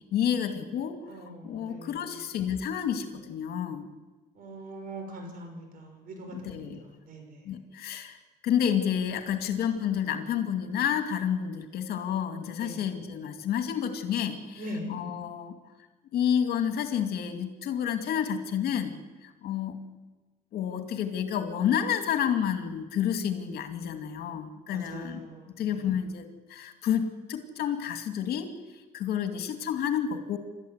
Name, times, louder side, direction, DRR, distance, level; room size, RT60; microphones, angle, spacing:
voice 1, 0.1-3.9 6.3-6.8 7.5-8.2 8.4-15.5 16.1-18.9 19.2-19.8 20.5-25.3 25.6-30.4, left 9 dB, 70° left, 7 dB, 2.4 m, -30 dB
voice 2, 1.1-1.9 4.4-6.7 7.1-7.4 12.6-12.8 14.6-14.8 24.7-25.8, equal, 55° right, 3 dB, 6.5 m, -41 dB
28.0 x 13.0 x 8.2 m, 1.2 s
cardioid pair, 110°, 17 cm